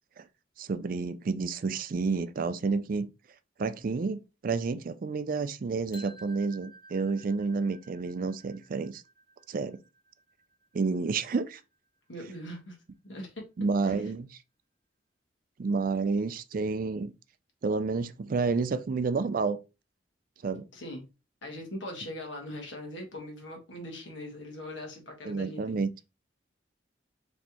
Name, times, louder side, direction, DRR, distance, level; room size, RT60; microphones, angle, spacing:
voice 1, 0.6-3.1 3.6-9.0 9.5-9.8 10.7-11.6 13.6-14.4 15.6-17.1 17.6-19.6 20.4-20.7 25.2-25.9, right 4 dB, 50° right, 0.4 m, -30 dB
sound 1, 5.9-11.8, right 1 dB, 25° left, 0.8 m, -55 dB
voice 2, 12.1-12.8 13.0-13.5 13.8-13.9 20.7-21.1 21.4-25.8, left 1 dB, 85° left, 1.5 m, -41 dB
4.2 x 3.2 x 2.9 m
head